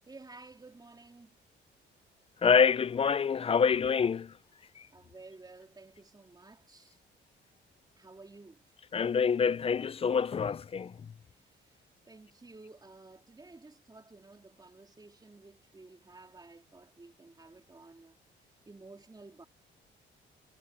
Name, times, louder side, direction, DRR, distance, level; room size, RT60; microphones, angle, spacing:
voice 1, 0.1-1.4 4.9-7.0 8.0-8.7 11.4-18.2 18.7-19.5, right 3 dB, 20° right, 3.7 m, -53 dB
voice 2, 2.4-4.3 8.9-10.9, left 6 dB, 30° left, 0.4 m, -26 dB
cardioid pair, 90°, 20 cm